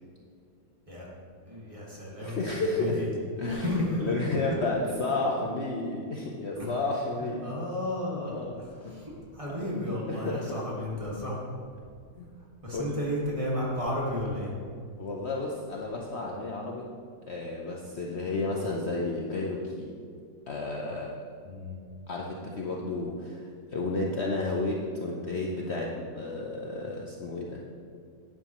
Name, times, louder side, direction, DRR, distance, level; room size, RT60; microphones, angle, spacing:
voice 1, 1.5-3.1 3.4-4.1 6.6-6.7 7.2-11.5 12.6-14.5 21.4-21.8, left 1 dB, 15° right, -5 dB, 1.7 m, -33 dB
voice 2, 2.2-3.0 3.4-7.5 8.2-8.5 8.8-9.0 9.5-9.7 10.1-10.6 12.2-12.3 12.7-12.9 15.0-16.9 17.3-19.9 20.5-21.1 22.1-27.6, left 2 dB, 70° left, -2 dB, 0.6 m, -32 dB
11.5 x 9.1 x 3.0 m, 2.2 s
omnidirectional pair, 2.3 m